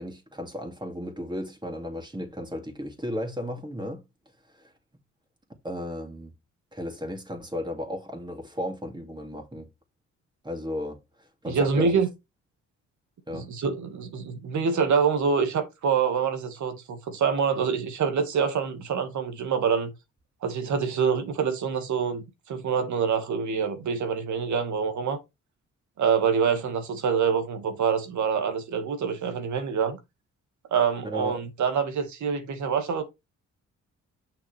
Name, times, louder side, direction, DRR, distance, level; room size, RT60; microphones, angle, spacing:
voice 1, 0.0-4.0 4.6-4.7 5.6-6.3 6.7-9.7 10.4-12.0 13.3-13.5 31.0-31.4, equal, 15° right, 2.6 m, -34 dB
voice 2, 11.5-12.1 13.3-19.9 20.4-25.2 26.0-30.0 30.7-33.0, right 6 dB, 70° right, 2.0 m, -26 dB
7.1 x 6.0 x 3.4 m
cardioid pair, 75°, 30 cm